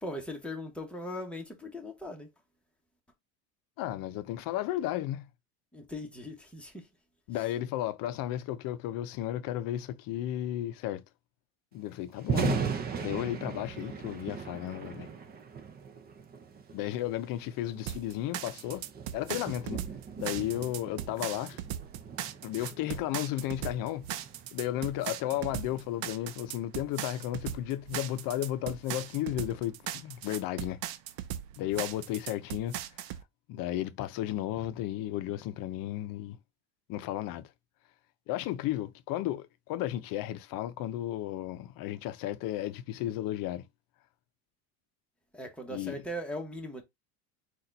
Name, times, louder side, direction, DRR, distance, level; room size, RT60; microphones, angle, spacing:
voice 1, 0.0-2.3 5.7-6.9 45.3-46.8, left 1 dB, 5° left, 1.1 m, -39 dB
voice 2, 3.8-5.3 7.3-11.0 11.7-12.7 13.0-15.1 16.7-18.8 19.1-19.8 20.2-21.6 22.4-24.1 24.5-30.8 31.6-32.8 33.0-33.1 33.5-36.4 36.9-37.5 38.3-43.7 45.7-46.0, left 13 dB, 50° left, 0.6 m, -34 dB
Thunder, 12.1-26.3, right 6 dB, 20° right, 0.5 m, -39 dB
sound 1, 17.9-33.2, right 11 dB, 65° right, 0.7 m, -38 dB
4.1 x 2.5 x 4.0 m
supercardioid pair, 125°, 44 cm